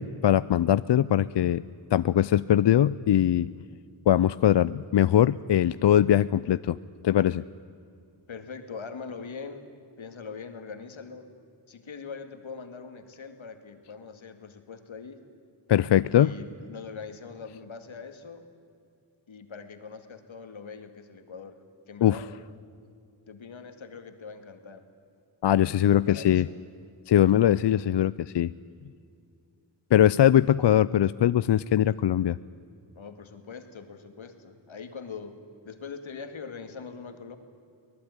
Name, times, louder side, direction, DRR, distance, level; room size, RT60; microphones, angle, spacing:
voice 1, 0.0-1.6 1.9-3.5 4.1-6.8 7.0-7.4 15.7-16.3 22.0-22.2 25.4-26.5 27.1-28.5 29.9-32.4, left 11 dB, 65° left, 17 dB, 0.5 m, -21 dB
voice 2, 8.3-9.7 10.0-11.3 11.7-15.2 16.1-18.5 19.3-21.6 21.9-22.3 23.3-24.8 25.8-26.6 32.9-35.4 35.6-37.4, left 5 dB, 90° left, 7 dB, 2.2 m, -42 dB
24.5 x 19.0 x 9.7 m, 2.4 s
cardioid pair, 60°, 46 cm